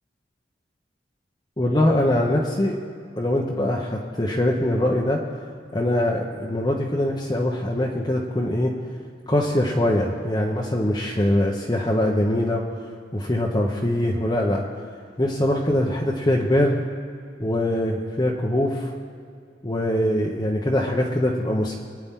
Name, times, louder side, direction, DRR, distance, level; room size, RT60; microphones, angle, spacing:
voice 1, 1.6-2.8 3.2-5.2 5.7-8.7 9.3-12.6 13.1-14.6 15.2-16.8 17.4-18.9 19.6-21.7, left 1 dB, 25° left, -3 dB, 1.1 m, -22 dB
25.5 x 9.7 x 3.8 m, 2.3 s
head